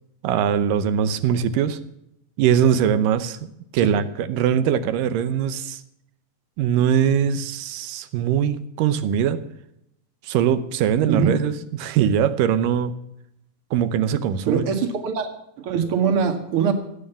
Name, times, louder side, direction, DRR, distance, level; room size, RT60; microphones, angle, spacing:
voice 1, 0.2-1.8 2.4-5.8 6.6-9.4 10.2-13.0 13.7-14.7, right 9 dB, 75° right, 12 dB, 2.3 m, -21 dB
voice 2, 14.5-15.3 15.6-16.7, right 6 dB, 45° right, 5 dB, 2.2 m, -22 dB
16.5 x 9.1 x 7.0 m, 0.79 s
omnidirectional pair, 4.2 m